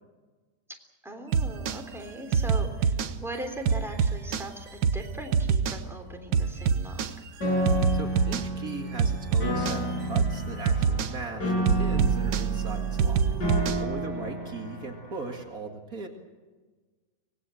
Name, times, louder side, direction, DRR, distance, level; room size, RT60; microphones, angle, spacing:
voice 1, 1.0-7.1, right 1 dB, ahead, 3 dB, 3.2 m, -39 dB
sound 1, 1.3-1.8 2.3-3.1 3.7-4.5 4.8-5.0 5.3-5.8 6.3-7.1 7.7-8.5 9.0-9.8 10.2-10.4 10.7-11.1 11.7-13.9, right 6 dB, 85° right, 1.8 m, -25 dB
Piano, 7.4-15.4, equal, 65° left, 7.3 m, -31 dB
voice 2, 7.9-13.2 13.5-16.1, right 3 dB, 50° right, 3 dB, 2.6 m, -39 dB
25.0 x 20.0 x 7.7 m, 1.3 s
omnidirectional pair, 1.9 m